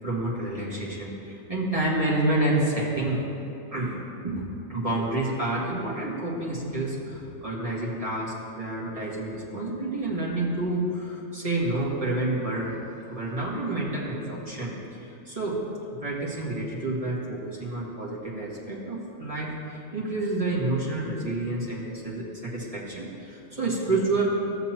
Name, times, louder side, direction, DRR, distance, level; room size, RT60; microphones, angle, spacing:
voice 1, 0.0-3.2 3.7-3.9 4.2-4.4 4.7-12.8 13.1-15.6 15.9-24.3, right 2 dB, 30° right, -7 dB, 2.0 m, -29 dB
16.0 x 6.7 x 3.0 m, 3.0 s
omnidirectional pair, 1.2 m